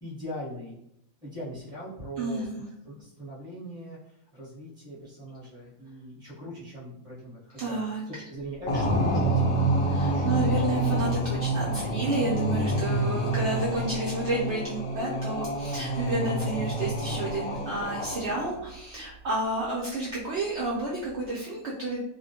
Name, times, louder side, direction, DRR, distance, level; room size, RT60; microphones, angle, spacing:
voice 1, 0.0-0.7 1.2-4.0 4.3-7.8 8.1-10.3, equal, 5° right, -9 dB, 0.8 m, -40 dB
voice 2, 2.2-2.6 7.6-8.2 9.8-22.0, right 2 dB, 65° right, -6 dB, 0.7 m, -31 dB
sound 1, 8.7-18.6, right 1 dB, 90° left, 0.4 m, -27 dB
2.4 x 2.1 x 2.7 m, 0.78 s
omnidirectional pair, 1.5 m